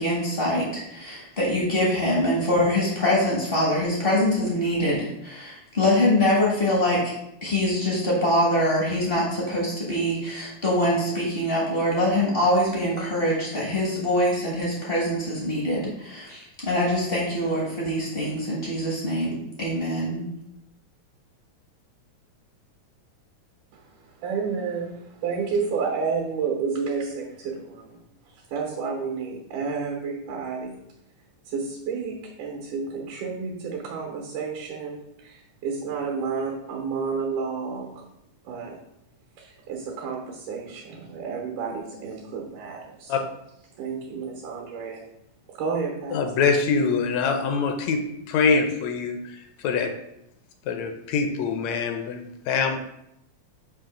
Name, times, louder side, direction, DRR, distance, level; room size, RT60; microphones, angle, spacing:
voice 1, 0.0-7.2 7.4-20.2, left 1 dB, 60° left, -4 dB, 0.5 m, -24 dB
voice 2, 24.2-24.9 25.2-28.0 28.5-30.7 31.5-37.9 38.5-38.8 39.4-43.3 43.8-45.0 45.6-46.2, right 5 dB, 90° right, 0 dB, 2.6 m, -30 dB
voice 3, 46.1-49.9 50.7-52.8, left 5 dB, 75° left, 6 dB, 1.7 m, -24 dB
7.2 x 2.8 x 5.8 m, 0.81 s
omnidirectional pair, 3.5 m